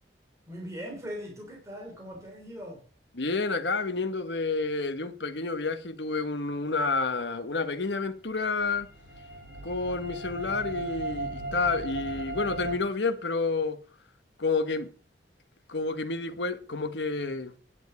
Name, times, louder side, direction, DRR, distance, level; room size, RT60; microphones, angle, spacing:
voice 1, 0.5-2.8, equal, 15° right, 3.4 m, -40 dB
voice 2, 3.1-8.9 9.6-13.8 14.4-14.9 15.7-17.5, left 3 dB, 80° left, 1.3 m, -29 dB
sound 1, 8.4-12.8, right 2 dB, 75° right, 3.2 m, -36 dB
10.5 x 7.2 x 7.0 m
head